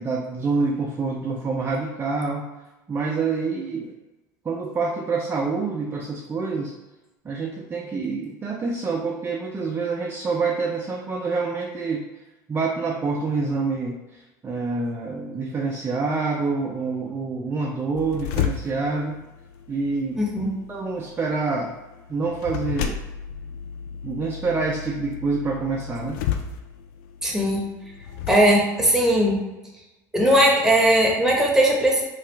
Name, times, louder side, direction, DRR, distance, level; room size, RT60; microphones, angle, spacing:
voice 1, 0.0-2.5 2.9-4.0 4.4-6.7 7.2-12.1 12.5-19.2 19.7-20.2 20.7-21.8 22.1-23.0 24.0-26.2, right 4 dB, 20° right, -1 dB, 0.4 m, -27 dB
sound 1, 17.9-28.4, left 8 dB, 70° left, 0.4 m, -33 dB
voice 2, 20.2-20.5 27.2-27.6 28.3-29.4 30.1-32.0, right 1 dB, 5° right, -2 dB, 0.9 m, -18 dB
2.7 x 2.4 x 3.3 m, 1.1 s
hypercardioid pair, 80°, 10 cm